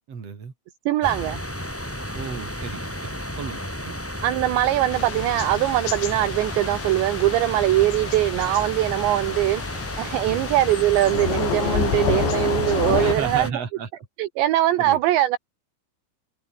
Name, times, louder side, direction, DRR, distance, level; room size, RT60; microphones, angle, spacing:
voice 1, 0.1-0.5 2.1-4.0 10.3-10.4 12.9-13.9 14.8-15.0, right 6 dB, 35° right, 4.4 m, -34 dB
voice 2, 0.9-1.4 4.2-9.6 10.0-13.5 14.2-15.4, right 14 dB, 75° right, 3.2 m, -21 dB
sound 1, 1.0-13.5, equal, 5° left, 4.9 m, -33 dB
Thunder / Rain, 4.9-13.2, left 10 dB, 70° left, 4.7 m, -29 dB
omnidirectional pair, 5.7 m